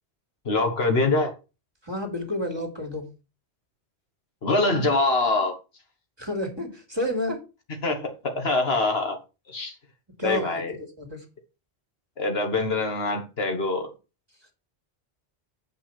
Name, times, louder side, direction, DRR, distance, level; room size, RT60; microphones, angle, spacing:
voice 1, 0.4-1.3 4.4-5.5 7.8-9.2 9.5-9.7 10.2-10.8 12.2-13.9, left 3 dB, 65° left, 1.7 m, -24 dB
voice 2, 1.8-3.1 6.2-7.4 10.2-11.2, equal, 20° right, 2.8 m, -30 dB
8.3 x 5.5 x 5.9 m
omnidirectional pair, 1.1 m